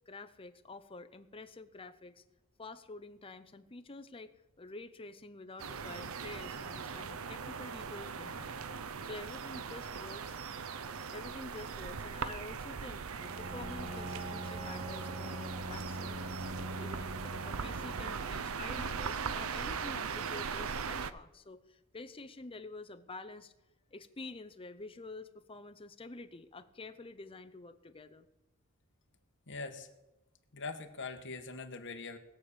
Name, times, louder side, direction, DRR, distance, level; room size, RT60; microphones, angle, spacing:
voice 1, 0.1-2.2 2.6-4.3 4.6-10.4 11.1-13.0 13.4-23.5 23.9-28.3, left 2 dB, 25° left, 10 dB, 0.7 m, -48 dB
sound 1, 5.6-21.1, right 6 dB, 70° right, 0.6 m, -40 dB
Bowed string instrument, 13.2-18.5, right 1 dB, 25° right, 1.2 m, -43 dB
voice 2, 29.5-29.9 30.5-32.2, left 4 dB, 55° left, 6 dB, 1.4 m, -42 dB
19.5 x 7.2 x 6.9 m, 0.99 s
head